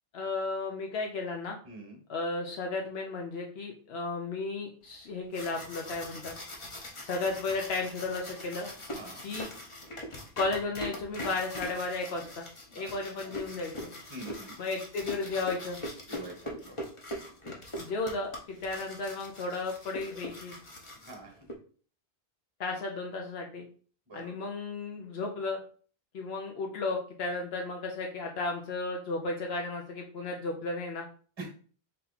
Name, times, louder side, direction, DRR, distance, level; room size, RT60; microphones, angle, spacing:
voice 1, 0.1-1.6 2.1-6.3 7.0-8.7 9.2-9.5 10.4-12.5 12.7-13.9 14.6-15.8 17.8-20.6 22.6-23.7 24.1-25.6 26.1-31.1, left 3 dB, 75° left, 2 dB, 0.9 m, -34 dB
sound 1, 5.1-21.5, left 1 dB, 35° left, 0.8 m, -42 dB
voice 2, 14.1-14.5 16.1-16.7 21.1-21.3 24.1-24.3 31.4-31.5, right 2 dB, 30° right, 1 dB, 1.0 m, -44 dB
3.7 x 2.8 x 4.0 m, 0.42 s
omnidirectional pair, 1.0 m